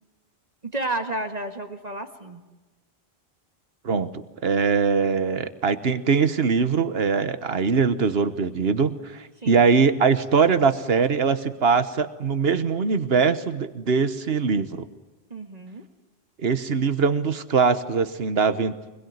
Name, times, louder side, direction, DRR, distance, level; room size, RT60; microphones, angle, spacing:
voice 1, 0.7-2.4 9.4-9.7 15.3-15.8, right 2 dB, 40° right, 5 dB, 1.8 m, -31 dB
voice 2, 3.8-14.8 16.4-18.9, right 5 dB, 70° right, 12 dB, 1.4 m, -22 dB
24.5 x 21.5 x 9.4 m, 1.1 s
omnidirectional pair, 1.1 m